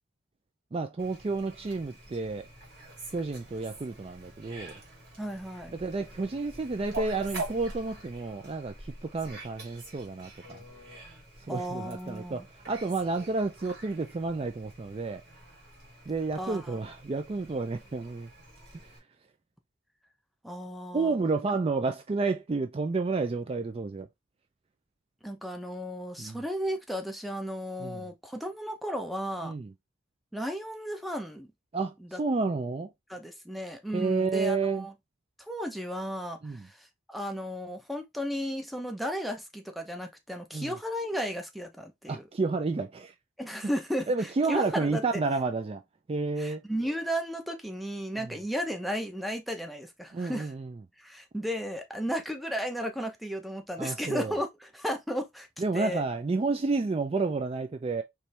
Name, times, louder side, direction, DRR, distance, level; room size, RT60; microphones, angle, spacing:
voice 1, 0.7-2.5 3.1-4.7 5.7-10.6 11.5-15.2 16.1-18.3 18.7-18.9 20.9-24.1 26.2-26.4 27.8-28.1 29.4-29.7 31.7-32.9 33.9-34.9 36.4-36.7 40.5-40.7 42.1-43.1 44.1-45.8 46.1-46.6 48.2-48.3 50.1-50.7 53.8-54.3 55.6-58.0, right 3 dB, 30° right, 0.3 m, -30 dB
Fowl, 1.0-19.0, right 2 dB, 50° right, 2.5 m, -45 dB
voice 2, 5.2-5.7 11.5-12.5 16.4-16.7 20.4-21.2 21.5-21.6 25.2-29.5 30.3-31.5 32.0-32.2 33.1-34.9 35.4-42.2 43.4-45.2 46.4-50.5 51.0-55.5 55.7-56.0, equal, ahead, 0.7 m, -34 dB
4.4 x 3.1 x 3.3 m
head